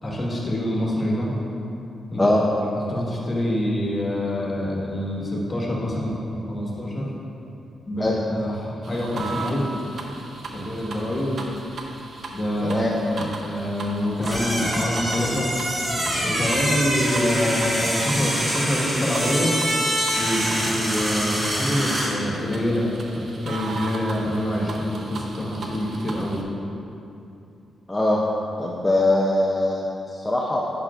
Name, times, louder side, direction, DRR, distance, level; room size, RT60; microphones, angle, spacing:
voice 1, 0.0-1.3 2.1-2.3 2.8-7.1 7.9-9.6 10.5-11.4 12.3-15.5 16.2-19.6 20.2-22.9 23.1-26.4, left 1 dB, 30° left, -3 dB, 1.4 m, -26 dB
sound 1, 8.8-26.4, right 3 dB, 55° right, 0.7 m, -38 dB
sound 2, 14.2-22.2, equal, 25° right, 1.6 m, -25 dB
voice 2, 27.9-28.2 28.6-30.6, left 1 dB, 10° left, -4 dB, 0.6 m, -21 dB
10.5 x 5.9 x 2.5 m, 2.8 s
cardioid pair, 110°, 0 cm